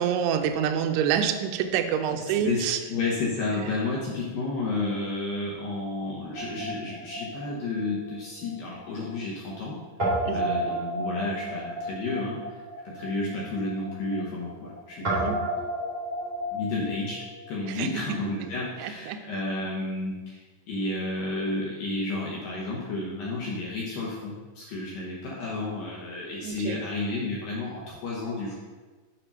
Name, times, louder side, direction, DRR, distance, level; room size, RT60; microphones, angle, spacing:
voice 1, 0.0-2.8 10.3-10.5 15.1-15.4 17.7-18.0 18.8-19.2 26.4-26.8, right 8 dB, 80° right, 6 dB, 2.4 m, -27 dB
voice 2, 2.9-9.8 10.3-12.6 12.9-15.3 16.5-20.4 20.7-28.5, left 2 dB, 70° left, -4 dB, 2.3 m, -31 dB
Guitar, 6.3-8.8 9.0-9.1 10.0-17.8, right 1 dB, 40° right, 0.8 m, -32 dB
7.1 x 5.0 x 5.4 m, 1.4 s
omnidirectional pair, 5.2 m